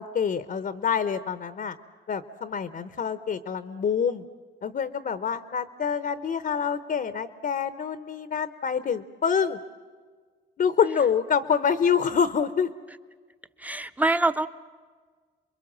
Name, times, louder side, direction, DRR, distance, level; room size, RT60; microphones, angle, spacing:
voice 1, 0.0-1.8 2.1-4.2 4.6-9.6 10.6-12.7, left 7 dB, 50° left, 12 dB, 0.9 m, -26 dB
voice 2, 13.6-14.5, right 2 dB, 10° right, 11 dB, 0.9 m, -24 dB
28.5 x 22.0 x 7.5 m, 1.6 s
cardioid pair, 90°, 20 cm